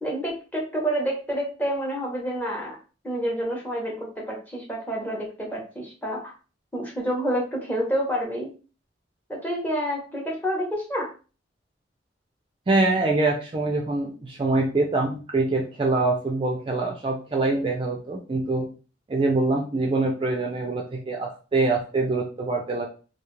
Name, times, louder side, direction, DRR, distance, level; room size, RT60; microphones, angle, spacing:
voice 1, 0.0-2.8 3.0-6.3 6.7-8.5 9.3-11.1, equal, 10° left, -2 dB, 0.7 m, -28 dB
voice 2, 12.7-18.7 19.1-22.9, right 2 dB, 30° right, 0 dB, 0.3 m, -24 dB
2.4 x 2.3 x 3.0 m, 0.35 s
head